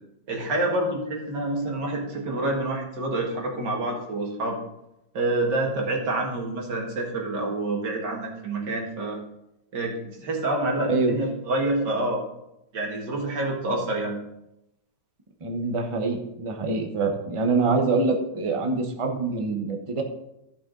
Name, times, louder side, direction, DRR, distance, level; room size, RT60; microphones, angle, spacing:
voice 1, 0.3-4.6 5.1-9.2 9.7-12.2 12.7-14.2, right 2 dB, 85° right, 0 dB, 2.5 m, -27 dB
voice 2, 10.8-11.2 15.4-20.0, right 3 dB, 25° right, 3 dB, 0.9 m, -25 dB
14.0 x 5.8 x 3.9 m, 0.86 s
omnidirectional pair, 1.8 m